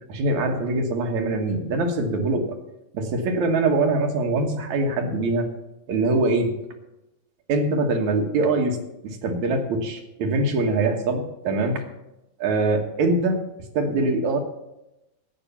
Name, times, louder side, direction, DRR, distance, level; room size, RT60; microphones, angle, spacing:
voice 1, 0.1-2.6 2.9-5.5 5.9-6.5 7.5-8.8 9.0-11.8 12.4-13.4 13.7-14.4, right 2 dB, 60° right, 3 dB, 2.4 m, -23 dB
12.5 x 8.6 x 7.1 m, 0.93 s
omnidirectional pair, 4.2 m